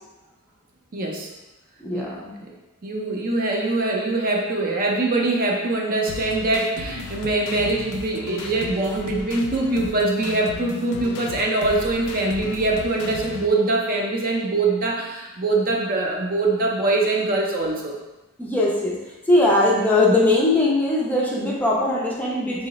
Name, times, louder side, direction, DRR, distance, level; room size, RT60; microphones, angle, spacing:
voice 1, 0.9-1.3 1.9-2.2 2.4-2.5 2.8-18.0, right 2 dB, 40° right, 0 dB, 0.5 m, -23 dB
voice 2, 1.8-2.3 18.4-19.0 19.3-22.7, left 2 dB, 5° left, -4 dB, 0.4 m, -20 dB
sound 1, 6.1-13.5, left 3 dB, 75° left, 0.3 m, -36 dB
3.7 x 2.0 x 3.9 m, 1.1 s
head